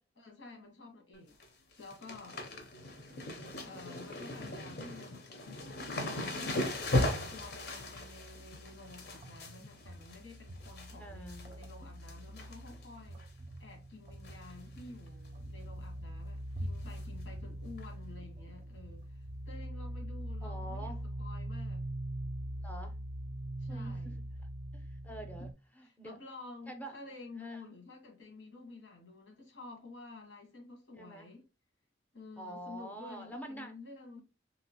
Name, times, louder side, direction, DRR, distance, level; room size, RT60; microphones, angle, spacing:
voice 1, 0.1-1.4 1.8-2.4 3.6-5.2 7.0-13.2 13.6-21.9 23.6-24.2 25.8-31.4 32.1-34.2, left 3 dB, 90° left, 1.4 m, -51 dB
sound 1, 1.1-1.5 1.7-10.9 11.3-11.7 12.0-12.9 13.2-13.3 14.2-14.5 14.8-14.9 15.3-15.4 16.9-17.0 17.8-17.9, left 2 dB, 60° left, 0.7 m, -37 dB
sound 2, 5.6-9.4 9.7-25.5, right 1 dB, 90° right, 0.4 m, -44 dB
sound 3, 9.1-20.1, equal, 35° right, 0.4 m, -50 dB
voice 2, 10.9-11.4 20.4-21.0 22.6-23.0 23.7-24.1 24.7-25.5 25.8-26.2 26.7-27.0 27.4-27.7 30.9-31.3 32.4-33.8, right 1 dB, 10° left, 0.6 m, -46 dB
2.9 x 2.9 x 2.9 m
head